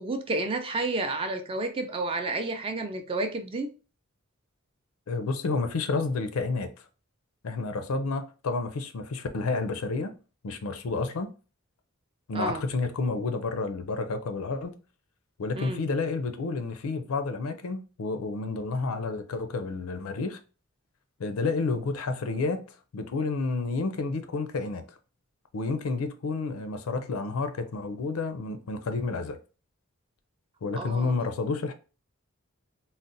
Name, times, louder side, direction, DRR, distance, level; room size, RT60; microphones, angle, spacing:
voice 1, 0.0-3.7 12.3-12.6 15.6-15.8 30.7-31.1, right 2 dB, 25° right, 0.4 m, -31 dB
voice 2, 5.1-6.7 7.4-10.1 10.4-11.3 12.3-14.7 15.4-20.4 21.2-22.6 22.9-25.0 25.5-29.4 30.6-31.7, left 3 dB, 85° left, 0.5 m, -30 dB
3.9 x 2.0 x 2.6 m
head